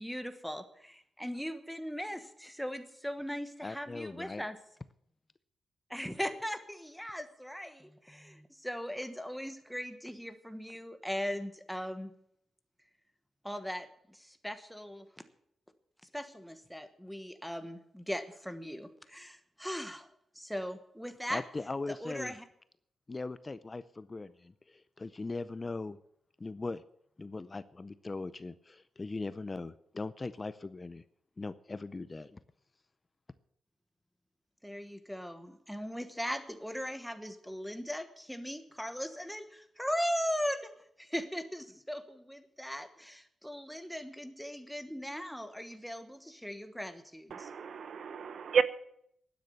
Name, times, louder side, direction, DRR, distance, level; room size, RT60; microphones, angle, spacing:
voice 1, 0.0-4.6 5.9-12.1 13.4-15.1 16.1-20.1 20.3-21.4 21.9-22.4 34.6-47.5, equal, ahead, 9 dB, 1.2 m, -39 dB
voice 2, 3.6-4.4 21.3-22.3 23.1-26.0 26.4-26.8 27.2-31.0 31.4-32.4, left 3 dB, 20° left, 15 dB, 0.5 m, -40 dB
voice 3, 47.3-48.6, right 6 dB, 60° right, 14 dB, 0.9 m, -31 dB
12.0 x 9.7 x 8.8 m, 0.69 s
wide cardioid pair, 150°, 0 cm